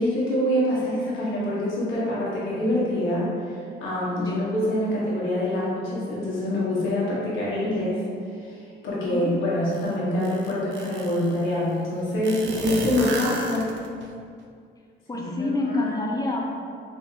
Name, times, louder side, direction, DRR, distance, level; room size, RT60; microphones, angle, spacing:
voice 1, 0.0-8.0 8.4-8.6 8.8-13.7 15.1-16.0, left 1 dB, 80° left, -7 dB, 1.1 m, -25 dB
sound 1, 9.7-9.8 10.2-11.3 12.2-14.1, right 3 dB, 65° right, 0.5 m, -32 dB
voice 2, 15.1-16.6, left 2 dB, 20° left, -1 dB, 0.6 m, -27 dB
3.6 x 3.4 x 2.7 m, 2.3 s
cardioid pair, 90°, 20 cm